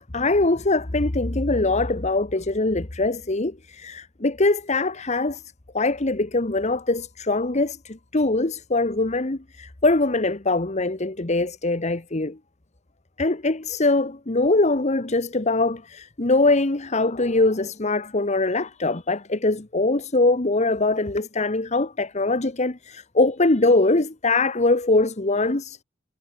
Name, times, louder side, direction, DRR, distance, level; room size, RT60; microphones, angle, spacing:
voice 1, 0.0-5.4 5.7-12.4 13.2-25.8, left 2 dB, 35° left, 1.2 m, -22 dB
head